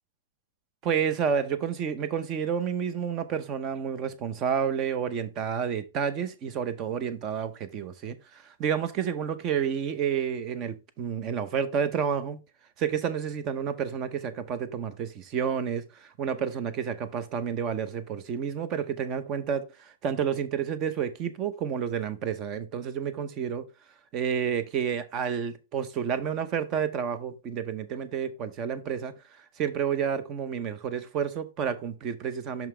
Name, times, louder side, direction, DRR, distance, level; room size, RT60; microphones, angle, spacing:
voice 1, 0.8-12.4 12.8-23.7 24.1-29.1 29.6-32.7, right 7 dB, 25° right, 0.7 m, -30 dB
6.0 x 5.5 x 3.3 m
supercardioid pair, 165°, 0 cm